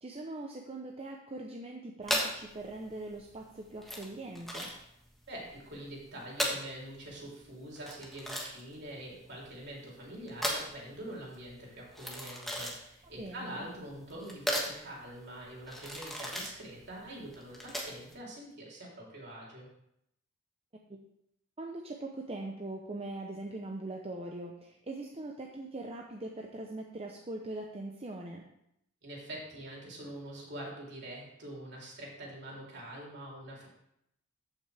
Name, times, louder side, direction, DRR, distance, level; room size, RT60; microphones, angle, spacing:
voice 1, 0.0-4.7 13.1-13.7 20.9-21.0 21.6-28.4, right 2 dB, 30° right, 1 dB, 0.7 m, -41 dB
sound 1, 2.0-18.1, equal, ahead, 1.4 m, -37 dB
voice 2, 5.3-19.7 29.0-33.7, right 1 dB, 60° right, -3 dB, 3.4 m, -45 dB
14.0 x 6.0 x 3.4 m, 0.78 s
head